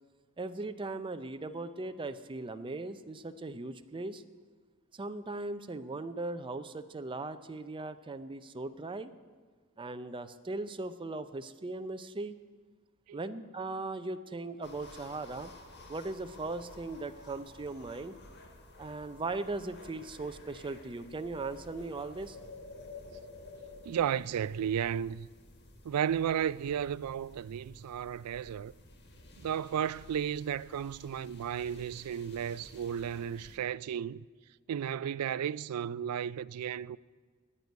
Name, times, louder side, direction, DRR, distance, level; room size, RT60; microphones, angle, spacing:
voice 1, 0.4-4.2 4.9-9.1 9.8-12.4 13.1-15.5 15.9-18.1 18.8-22.4, right 2 dB, 20° right, 0.5 m, -38 dB
sound 1, 14.6-33.6, left 2 dB, 50° left, 1.5 m, -52 dB
voice 2, 23.9-25.3 25.9-28.7 29.4-34.2 34.7-37.0, right 9 dB, 85° right, 0.3 m, -33 dB
9.7 x 9.6 x 9.2 m
head